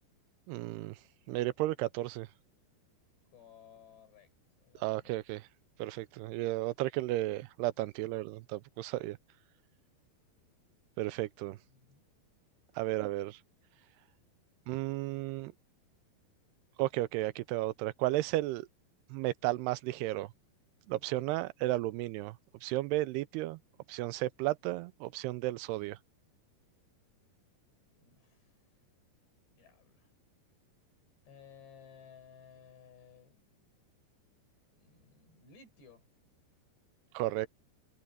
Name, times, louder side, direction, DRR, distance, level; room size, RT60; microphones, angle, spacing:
voice 1, 0.5-1.0 1.3-2.3 4.8-5.4 5.8-9.2 11.0-11.6 12.8-13.3 14.7-15.5 16.8-18.7 19.1-20.3 20.9-22.3 22.6-23.6 23.9-26.0 37.1-37.5, right 17 dB, 85° right, 2.5 m, -33 dB
voice 2, 3.3-4.3 4.6-5.1 11.4-12.0 13.0-13.1 28.0-28.6 29.6-30.1 31.3-33.5 34.7-36.0, left 7 dB, 80° left, 8.6 m, -58 dB
omnidirectional pair, 4.8 m